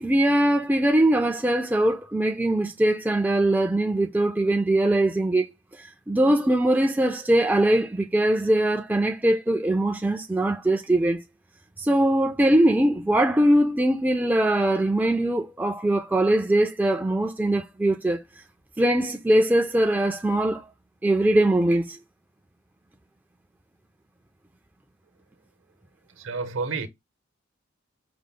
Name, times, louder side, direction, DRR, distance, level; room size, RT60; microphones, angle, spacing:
voice 1, 0.0-5.5 6.1-11.2 11.8-18.2 18.8-20.7 21.0-22.0, right 1 dB, 10° right, 0.3 m, -21 dB
voice 2, 26.2-26.9, right 4 dB, 70° right, 0.9 m, -30 dB
4.9 x 2.1 x 3.7 m
head